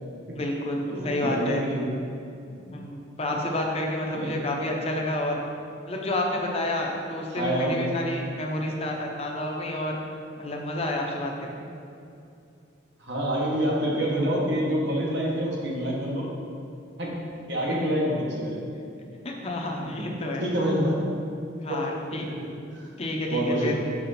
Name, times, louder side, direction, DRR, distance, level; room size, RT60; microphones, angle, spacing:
voice 1, 0.3-1.7 2.7-5.4 5.8-10.0 10.4-11.7 17.7-18.0 19.2-20.5 21.6-22.3 23.0-23.7, left 1 dB, 30° left, 0 dB, 0.7 m, -29 dB
voice 2, 0.9-1.9 2.5-2.7 4.1-4.4 7.3-7.8 13.0-16.3 17.0-18.6 19.8-20.0 20.4-21.0 21.7-21.8 23.3-23.7, equal, 60° right, -3 dB, 1.4 m, -27 dB
6.1 x 5.9 x 4.2 m, 2.6 s
head